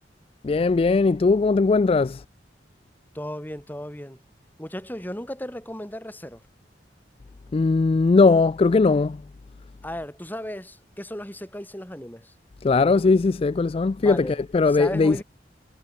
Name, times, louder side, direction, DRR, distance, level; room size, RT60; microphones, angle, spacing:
voice 1, 0.4-2.2 7.5-9.2 12.6-15.2, left 4 dB, 30° left, 0.3 m, -19 dB
voice 2, 3.1-4.2 4.6-6.4 9.8-12.3 14.0-14.4 14.7-15.2, left 1 dB, 10° left, 4.2 m, -35 dB
head